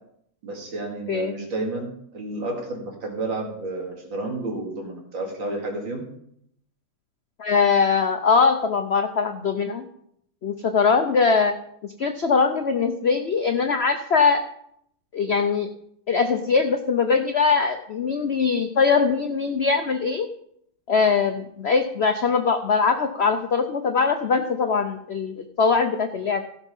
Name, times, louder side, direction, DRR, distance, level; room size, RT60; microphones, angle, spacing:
voice 1, 0.4-6.1, right 2 dB, 80° right, 1 dB, 3.0 m, -31 dB
voice 2, 7.4-9.8 10.4-11.5 12.0-14.4 15.1-15.7 16.1-20.3 20.9-26.4, left 5 dB, 75° left, 7 dB, 0.6 m, -21 dB
16.5 x 5.9 x 5.4 m, 0.73 s
omnidirectional pair, 2.1 m